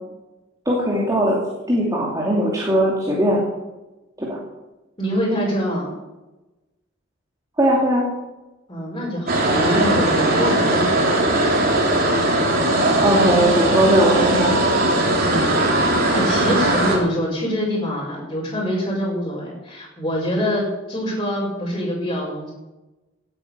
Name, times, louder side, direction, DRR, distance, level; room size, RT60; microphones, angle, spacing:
voice 1, 0.7-1.4 1.7-3.4 4.2-4.4 7.6-8.1 13.0-14.6, right 1 dB, 20° right, -3 dB, 2.7 m, -19 dB
voice 2, 5.0-5.9 8.7-11.4 15.2-22.5, equal, 25° left, -6 dB, 5.1 m, -25 dB
sound 1, 9.3-17.0, right 1 dB, 50° right, 3.8 m, -19 dB
17.5 x 9.0 x 6.8 m, 1.1 s
head